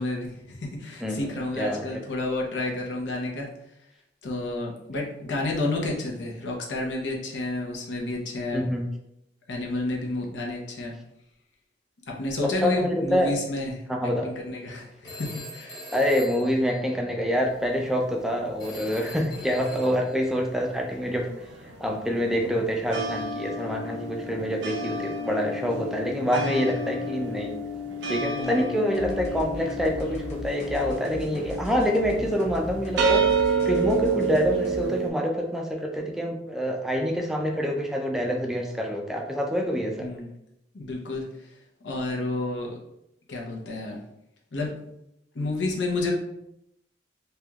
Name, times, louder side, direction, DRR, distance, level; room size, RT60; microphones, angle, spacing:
voice 1, 0.0-3.5 4.2-8.7 9.5-10.9 12.1-13.8 14.2-15.8 28.3-28.7 40.0-40.3 40.7-41.5 41.8-42.8 43.3-44.0 44.5-44.7 45.3-46.1, left 2 dB, 80° left, -1 dB, 0.7 m, -30 dB
voice 2, 8.5-8.9 12.4-13.3 13.9-14.3 15.9-21.2 21.8-27.5 28.1-33.2 33.7-40.1, equal, 5° right, 1 dB, 0.3 m, -26 dB
Telephone, 15.0-17.4 18.6-20.3, left 1 dB, 25° left, 1.1 m, -42 dB
sound 1, 17.4-20.1 20.3-35.1, right 3 dB, 80° right, 0.5 m, -30 dB
sound 2, 28.9-35.0, equal, 40° left, 0.7 m, -38 dB
3.3 x 2.8 x 2.3 m, 0.82 s
head